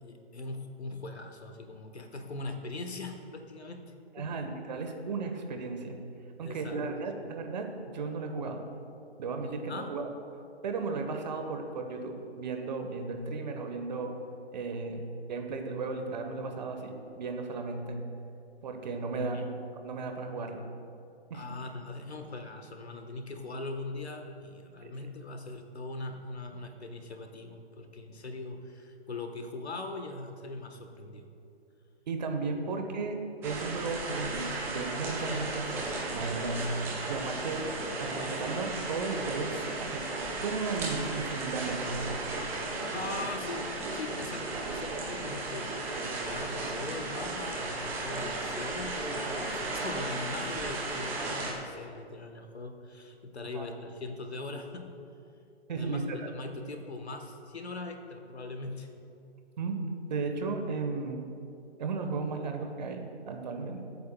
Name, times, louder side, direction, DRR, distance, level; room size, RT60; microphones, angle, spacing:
voice 1, 0.0-4.4 6.4-7.3 9.4-9.9 19.1-19.5 21.3-31.3 32.5-32.7 42.9-45.7 46.0-54.9 55.7-58.9, left 3 dB, 75° left, 5 dB, 1.3 m, -41 dB
voice 2, 4.1-6.0 6.4-8.6 9.2-10.0 10.6-14.1 14.5-15.0 15.3-18.0 18.6-19.5 19.8-20.6 21.3-21.4 24.8-24.9 32.1-33.2 33.4-37.7 38.0-40.1 40.4-42.2 42.9-43.2 53.5-53.7 55.7-56.0 59.6-61.2 61.8-63.9, right 4 dB, 40° right, 4 dB, 1.2 m, -35 dB
sound 1, 33.4-51.5, right 2 dB, 5° right, 0.6 m, -35 dB
21.0 x 8.5 x 2.3 m, 2.7 s
figure-of-eight pair, 135°, 33 cm